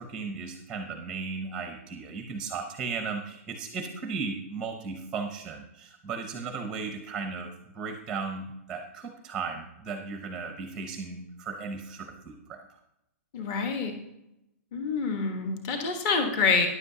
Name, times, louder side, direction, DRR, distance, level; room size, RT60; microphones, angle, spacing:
voice 1, 0.0-12.7, right 4 dB, 10° right, 5 dB, 0.7 m, -36 dB
voice 2, 13.3-13.9 14.7-16.7, left 4 dB, 30° left, 5 dB, 1.2 m, -27 dB
13.5 x 10.0 x 2.8 m, 0.86 s
hypercardioid pair, 170°, 8 cm